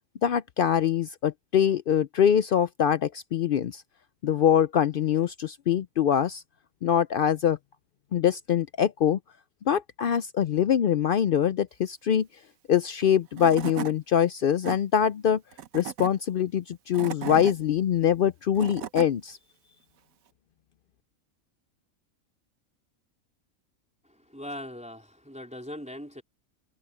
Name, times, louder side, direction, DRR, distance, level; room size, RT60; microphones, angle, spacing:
voice 1, 0.2-3.8 4.2-6.4 6.8-7.6 8.1-9.2 9.7-12.3 12.7-15.4 15.7-19.4, left 9 dB, 75° left, 0.5 m, -24 dB
Tools / Wood, 13.0-13.1 13.4-13.9 14.4-14.8 15.5-16.1 16.7-17.5 18.3-19.1, right 9 dB, 75° right, 1.3 m, -36 dB
voice 2, 24.3-26.2, left 1 dB, 5° right, 3.9 m, -40 dB
omnidirectional pair, 1.5 m